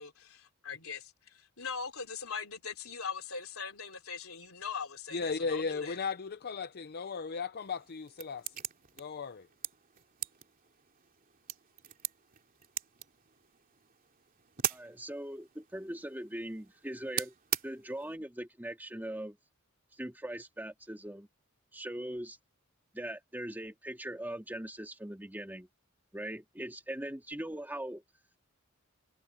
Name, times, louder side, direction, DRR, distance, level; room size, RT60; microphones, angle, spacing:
voice 1, 0.0-6.0, left 5 dB, 75° left, 3.8 m, -41 dB
voice 2, 5.1-8.6 9.0-9.5, left 5 dB, 50° left, 0.6 m, -36 dB
sound 1, 7.6-18.2, right 10 dB, 45° right, 2.7 m, -42 dB
voice 3, 14.7-17.3 17.6-19.4 19.9-21.3 21.7-22.4 22.9-25.7 26.1-28.0, right 1 dB, 10° right, 2.0 m, -40 dB
head